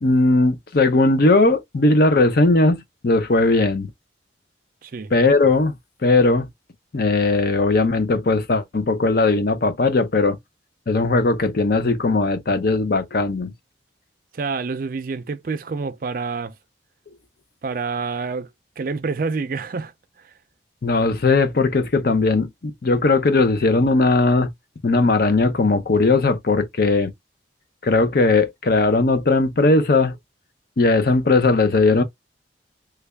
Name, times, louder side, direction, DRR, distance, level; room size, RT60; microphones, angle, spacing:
voice 1, 0.0-3.9 5.1-5.8 6.0-6.5 6.9-10.4 10.9-13.5 20.8-24.5 24.8-27.1 27.8-30.2 30.8-32.0, left 3 dB, 55° left, 0.6 m, -18 dB
voice 2, 4.8-5.1 14.3-16.6 17.6-18.5 18.8-19.9 20.2-20.3, right 4 dB, 50° right, 0.4 m, -27 dB
3.2 x 2.3 x 3.4 m
head